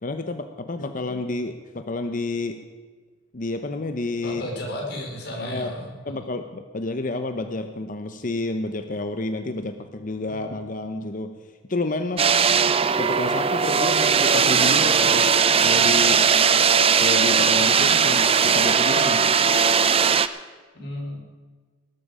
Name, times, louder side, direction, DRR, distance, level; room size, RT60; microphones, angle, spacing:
voice 1, 0.0-2.6 3.3-4.4 5.4-5.7 6.1-11.3 11.7-12.3 13.0-15.3 15.6-16.2 17.0-19.3, left 2 dB, 45° left, 8 dB, 0.8 m, -30 dB
voice 2, 4.2-6.2 20.7-21.2, left 1 dB, 60° left, 0 dB, 4.4 m, -33 dB
sound 1, 12.2-20.3, right 6 dB, 30° right, 0.6 m, -19 dB
19.0 x 12.5 x 4.9 m, 1.4 s
head